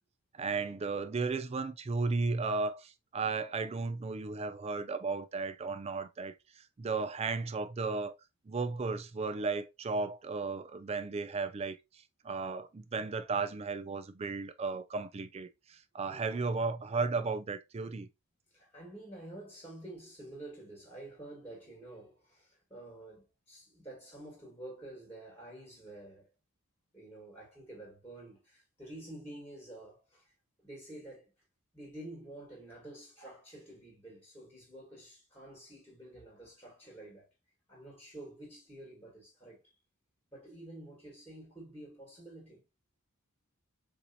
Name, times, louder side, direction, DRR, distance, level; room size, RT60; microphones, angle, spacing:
voice 1, 0.4-8.1 8.5-11.8 12.2-18.1, right 4 dB, 30° right, 0.3 m, -34 dB
voice 2, 18.5-26.3 26.9-30.3 30.6-31.3 31.7-37.3 37.7-39.7 40.3-42.6, right 1 dB, 10° left, 1.6 m, -49 dB
4.6 x 2.7 x 2.7 m
head